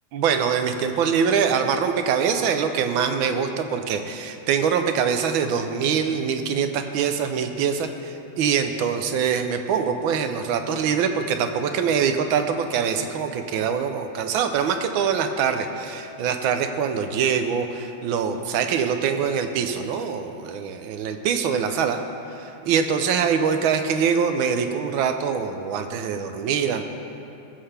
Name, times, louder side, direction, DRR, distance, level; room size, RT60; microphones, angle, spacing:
voice 1, 0.1-7.9 8.4-22.0 22.4-26.8, right 7 dB, 75° right, 7 dB, 1.5 m, -24 dB
18.5 x 7.6 x 3.4 m, 2.7 s
omnidirectional pair, 2.2 m